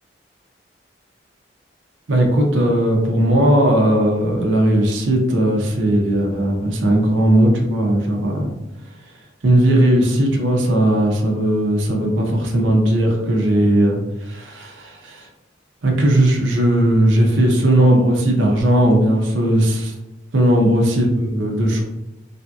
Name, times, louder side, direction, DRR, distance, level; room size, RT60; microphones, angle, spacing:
voice 1, 2.1-8.5 9.4-15.3 15.8-19.9 20.3-21.8, right 1 dB, 90° right, 1 dB, 0.6 m, -17 dB
3.4 x 2.7 x 2.3 m, 0.94 s
head